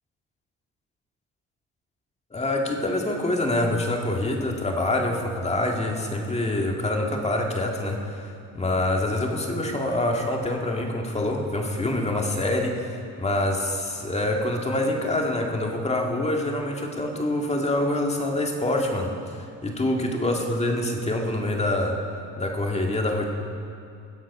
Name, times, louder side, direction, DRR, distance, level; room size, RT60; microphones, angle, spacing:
voice 1, 2.3-22.0 22.4-23.2, left 1 dB, 20° left, 1 dB, 2.0 m, -26 dB
20.5 x 7.6 x 5.5 m, 2.4 s
cardioid pair, 90°, 30 cm